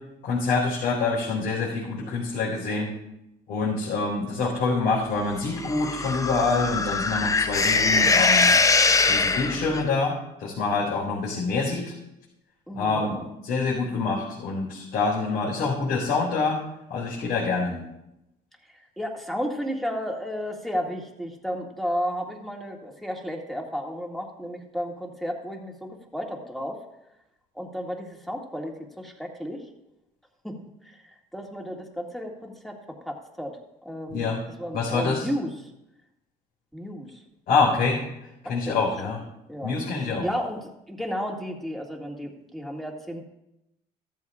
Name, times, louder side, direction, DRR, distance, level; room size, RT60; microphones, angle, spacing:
voice 1, 0.2-2.9 3.5-8.5 9.1-11.9 12.7-16.6 16.9-17.8 34.1-34.4 34.7-35.3 37.5-38.0 38.5-39.2 39.6-40.3, left 4 dB, 70° left, -6 dB, 4.2 m, -26 dB
sound 1, 5.5-9.8, left 4 dB, 20° left, 0.5 m, -22 dB
voice 2, 12.7-13.3 18.7-26.8 27.5-29.6 30.4-34.3 34.6-35.7 36.7-37.2 38.4-39.1 39.5-39.7 40.2-43.2, equal, ahead, 0 dB, 2.0 m, -33 dB
15.0 x 13.5 x 2.4 m, 0.90 s
cardioid pair, 110°, 17 cm